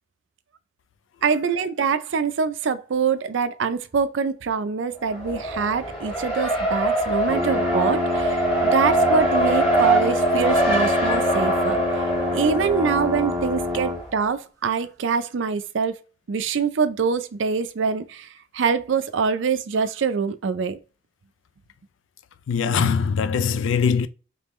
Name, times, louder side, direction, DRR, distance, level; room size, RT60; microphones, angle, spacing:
voice 1, 1.2-12.0 12.3-16.0 16.3-18.3 18.5-20.8, right 5 dB, 70° right, 0.4 m, -24 dB
Race car auto racing, 5.0-14.1, right 1 dB, 30° left, 1.4 m, -23 dB
sound 1, 7.3-14.0, left 2 dB, 15° right, 0.5 m, -27 dB
voice 2, 22.5-24.1, left 6 dB, 75° left, 0.4 m, -21 dB
3.5 x 3.3 x 3.1 m
head